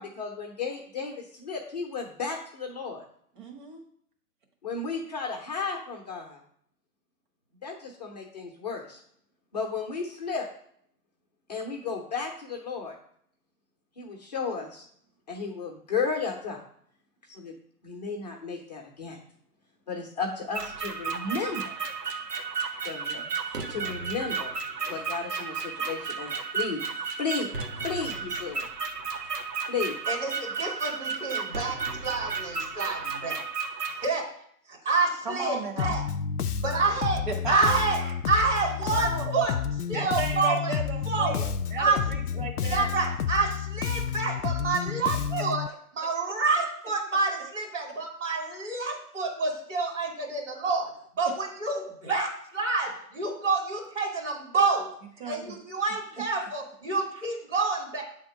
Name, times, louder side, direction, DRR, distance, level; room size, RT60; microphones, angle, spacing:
voice 1, 0.0-3.0 4.6-6.4 7.6-9.0 9.5-10.5 11.5-13.0 14.0-14.8 15.3-16.6 17.3-17.5 17.8-19.2 19.9-21.8 22.8-24.6 24.8-27.6 27.8-28.7 29.7-30.0, left 4 dB, 25° left, 1 dB, 0.9 m, -34 dB
voice 2, 3.4-3.8 35.2-35.9 37.3-38.1 38.9-39.4 39.9-41.4 41.7-42.9 45.3-45.7 55.2-55.4, right 3 dB, 30° right, 1 dB, 1.5 m, -34 dB
sound 1, 20.5-34.1, right 5 dB, 80° right, 1.3 m, -33 dB
voice 3, 30.1-33.4 34.0-34.3 34.7-36.0 36.6-37.2 37.5-38.0 38.3-39.6 39.9-40.8 41.1-42.1 42.7-45.7 45.9-54.9 55.2-58.0, right 3 dB, 50° right, 0 dB, 2.6 m, -28 dB
Bass guitar, 35.8-45.7, left 7 dB, 75° left, 0.5 m, -30 dB
8.3 x 3.6 x 5.0 m, 0.66 s
figure-of-eight pair, 140°, 46 cm